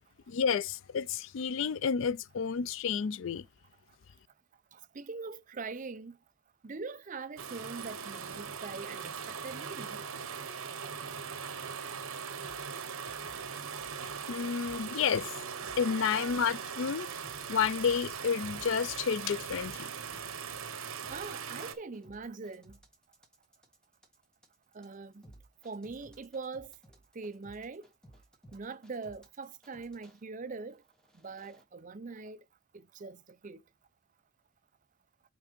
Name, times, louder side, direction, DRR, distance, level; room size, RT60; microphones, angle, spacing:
voice 1, 0.3-3.5 14.3-15.3 15.8-17.1 17.5-19.9, left 6 dB, 60° left, 0.3 m, -30 dB
voice 2, 4.7-6.1 6.6-10.0 21.1-22.8 24.7-25.2 25.6-26.7 27.1-27.9 28.5-30.8 31.2-32.4 32.7-33.6, right 4 dB, 35° right, 0.4 m, -42 dB
sound 1, 7.4-21.7, right 6 dB, 75° right, 1.0 m, -40 dB
sound 2, 12.4-15.2 15.6-16.9 17.2-30.2 30.8-31.6, right 1 dB, 5° left, 1.2 m, -58 dB
5.8 x 4.5 x 5.1 m
head